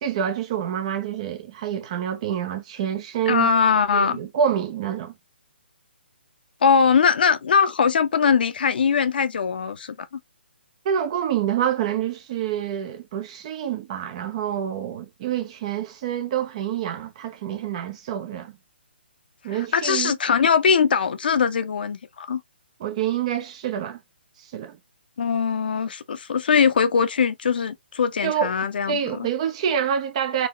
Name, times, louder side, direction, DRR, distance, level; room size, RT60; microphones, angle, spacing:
voice 1, 0.0-3.5 3.9-5.1 10.8-18.5 19.4-20.1 22.8-24.0 24.4-24.8 28.2-28.5 28.9-30.5, right 9 dB, 35° right, 0.6 m, -27 dB
voice 2, 3.3-4.2 6.6-10.2 19.5-22.4 25.2-29.3, left 6 dB, 55° left, 0.7 m, -21 dB
4.0 x 2.7 x 3.0 m
figure-of-eight pair, 135°, 6 cm